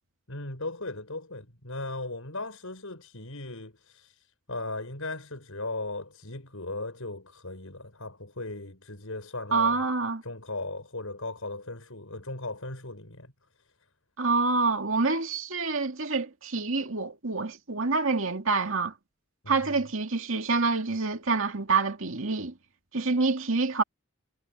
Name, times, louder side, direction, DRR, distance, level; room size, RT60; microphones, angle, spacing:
voice 1, 0.3-9.8 10.2-13.3 19.4-19.8, left 2 dB, 70° left, 6.6 m, -37 dB
voice 2, 9.5-10.2 14.2-18.9 19.5-22.5 22.9-23.8, right 4 dB, 65° right, 2.4 m, -27 dB
head